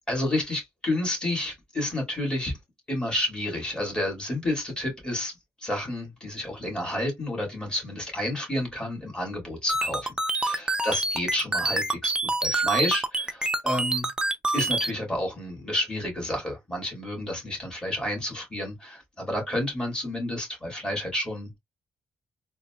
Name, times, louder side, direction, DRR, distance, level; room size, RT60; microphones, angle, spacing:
voice 1, 0.1-2.5 2.9-12.1 12.4-14.1 14.5-21.6, left 1 dB, 15° left, 2.0 m, -30 dB
sound 1, 9.7-14.9, right 2 dB, 10° right, 0.5 m, -26 dB
3.8 x 2.2 x 2.3 m
cardioid pair, 95°, 6 cm